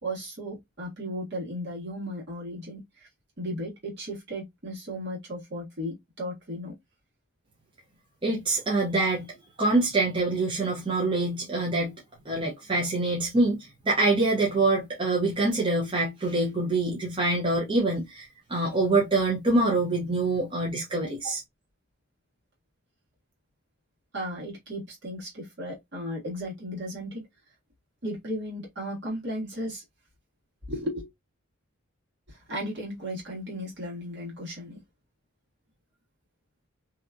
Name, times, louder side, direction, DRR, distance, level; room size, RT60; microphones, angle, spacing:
voice 1, 0.0-2.8 3.4-6.7 21.2-21.3 24.1-27.2 28.0-29.8 30.7-31.1 32.3-34.8, equal, 55° right, 1.5 m, -35 dB
voice 2, 8.2-9.3 9.6-11.9 12.2-21.4, right 2 dB, 25° right, 0.7 m, -25 dB
2.8 x 2.3 x 2.4 m
head